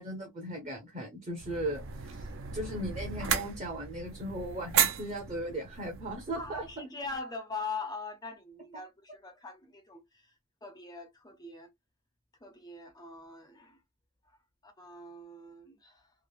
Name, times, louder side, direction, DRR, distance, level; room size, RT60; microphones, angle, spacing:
voice 1, 0.0-6.6, right 1 dB, 30° right, 0.7 m, -37 dB
sound 1, 1.4-6.8, right 8 dB, 60° right, 0.4 m, -34 dB
voice 2, 6.4-10.3 10.6-11.7 12.4-13.8 14.2-14.4 14.6-16.1, left 3 dB, 15° left, 0.4 m, -42 dB
3.1 x 2.0 x 2.3 m
head